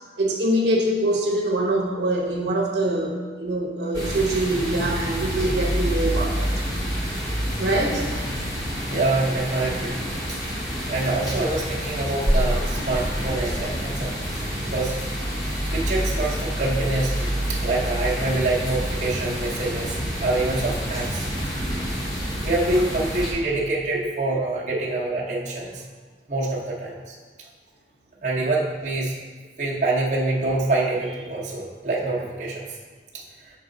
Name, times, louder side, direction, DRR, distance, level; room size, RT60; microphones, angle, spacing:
voice 1, 0.2-6.5 7.6-8.0 24.7-24.8, right 1 dB, 80° right, -1 dB, 0.8 m, -24 dB
sound 1, 3.9-23.3, equal, 20° left, 1.0 m, -27 dB
voice 2, 8.9-10.0 10.9-14.1 14.6-14.9 15.7-21.2 22.4-25.8 26.3-27.2 28.2-29.1 29.6-32.7 33.1-33.2, right 2 dB, 40° right, -5 dB, 0.8 m, -25 dB
6.2 x 4.0 x 3.8 m, 1.4 s
head